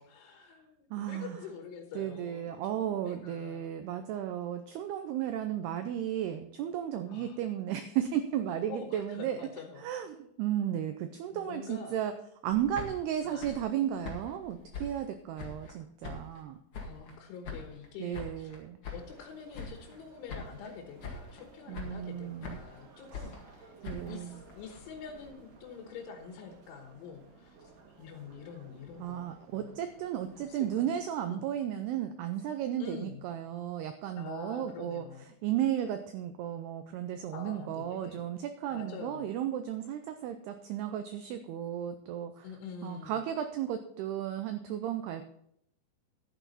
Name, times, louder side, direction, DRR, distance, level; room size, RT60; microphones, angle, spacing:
voice 1, 0.0-3.7 7.1-7.4 8.7-9.9 11.3-12.0 13.2-13.5 16.8-18.5 18.9-23.8 24.1-27.7 28.0-29.8 30.4-31.0 31.3-31.5 32.8-33.2 34.2-35.3 37.3-38.2 38.7-39.3 42.4-43.3, left 6 dB, 85° left, 3 dB, 3.6 m, -46 dB
voice 2, 0.9-1.4 2.0-9.4 9.8-12.1 12.4-16.6 18.0-18.8 21.7-22.5 23.8-24.4 29.0-35.1 35.4-42.5 42.8-45.4, right 10 dB, 85° right, 8 dB, 2.3 m, -34 dB
sound 1, 12.5-15.8 16.0-17.2 17.4-19.3 19.5-20.0 20.3-20.7 21.0-21.4 21.7-22.8 23.1-25.3, left 4 dB, 55° left, 1.5 m, -44 dB
sound 2, 18.9-30.7, right 4 dB, 55° right, 2.9 m, -57 dB
11.5 x 9.2 x 4.1 m, 0.72 s
omnidirectional pair, 5.4 m